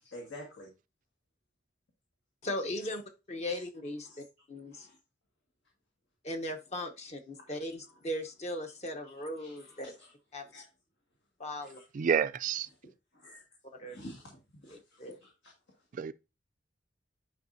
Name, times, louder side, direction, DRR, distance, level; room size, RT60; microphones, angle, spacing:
voice 1, 0.0-0.7 3.5-3.6 4.0-4.2 4.7-5.0 9.4-9.9 10.5-10.6 11.6-11.8 13.1-13.5 13.8-15.5, left 1 dB, 80° left, 1.9 m, -49 dB
voice 2, 2.4-3.0 3.3-4.9 6.2-9.9 10.3-10.5 11.4-11.8 13.7-14.0 14.7-15.1, left 1 dB, 40° left, 0.9 m, -38 dB
voice 3, 11.9-12.7 15.9-16.1, right 7 dB, 45° right, 0.3 m, -29 dB
9.3 x 5.5 x 2.7 m
head